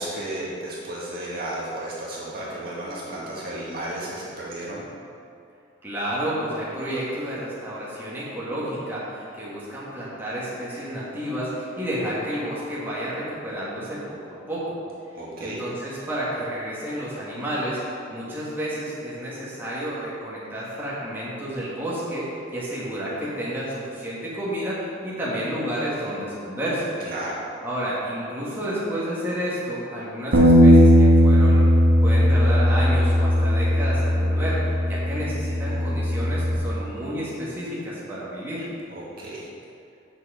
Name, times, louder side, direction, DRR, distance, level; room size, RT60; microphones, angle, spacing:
voice 1, 0.0-4.9 15.2-15.6 27.1-27.4 38.9-39.5, right 1 dB, 50° right, -7 dB, 1.9 m, -33 dB
voice 2, 5.8-14.8 15.4-17.8 18.1-22.2 22.5-26.9 27.6-31.7 32.0-38.7, equal, 10° right, -9 dB, 1.8 m, -30 dB
Bass guitar, 30.3-36.6, equal, 90° right, 1.2 m, -17 dB
7.9 x 6.3 x 4.9 m, 2.6 s
head